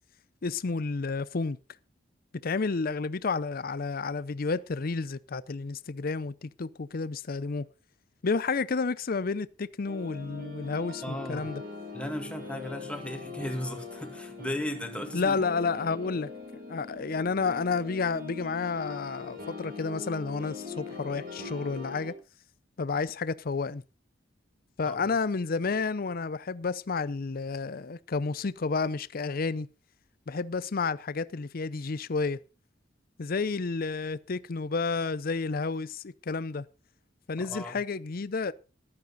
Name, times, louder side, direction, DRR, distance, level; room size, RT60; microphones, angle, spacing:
voice 1, 0.4-1.6 2.4-7.7 8.2-11.6 15.1-16.3 16.7-22.1 22.8-23.8 24.8-29.7 30.3-32.4 33.2-36.7 37.3-38.5, left 4 dB, 50° left, 0.6 m, -31 dB
sound 1, 9.9-22.1, left 4 dB, 50° right, 7.3 m, -41 dB
voice 2, 11.0-11.5 11.9-15.4 24.9-25.0 37.4-37.8, left 1 dB, 5° left, 2.1 m, -36 dB
14.5 x 12.0 x 4.0 m
head